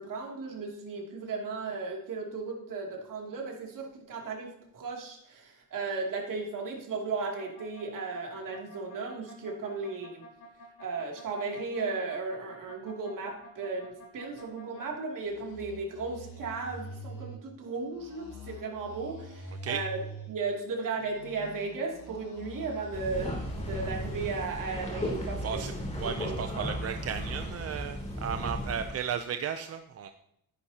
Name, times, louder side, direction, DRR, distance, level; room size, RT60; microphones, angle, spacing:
voice 1, 0.0-10.2 10.8-20.0 20.3-25.6 26.0-26.7, right 4 dB, 60° right, -1 dB, 2.7 m, -35 dB
sound 1, 7.2-14.9 15.2-17.4 17.9-20.4 20.9-24.3, equal, 85° left, 4.0 m, -46 dB
sound 2, 22.9-28.9, equal, 20° left, 2.8 m, -35 dB
voice 2, 26.0-30.1, right 8 dB, 45° right, 7 dB, 0.5 m, -34 dB
14.0 x 10.5 x 2.9 m, 0.76 s
wide cardioid pair, 170°, 36 cm